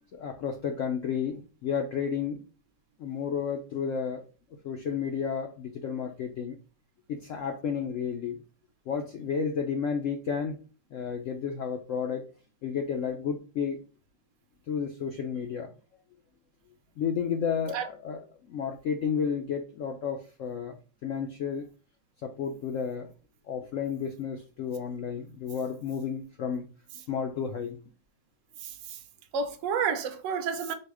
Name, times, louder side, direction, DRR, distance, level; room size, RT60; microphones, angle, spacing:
voice 1, 0.1-2.4 3.0-4.2 4.6-6.6 7.1-8.4 8.9-10.6 10.9-12.2 12.6-13.8 14.7-15.7 17.0-18.2 18.5-20.8 21.0-21.7 22.2-23.1 23.5-26.7 27.1-27.8, left 7 dB, 70° left, 0.7 m, -32 dB
voice 2, 28.6-29.0 29.3-30.7, right 6 dB, 65° right, 0.8 m, -30 dB
4.7 x 2.1 x 4.7 m
omnidirectional pair, 1.8 m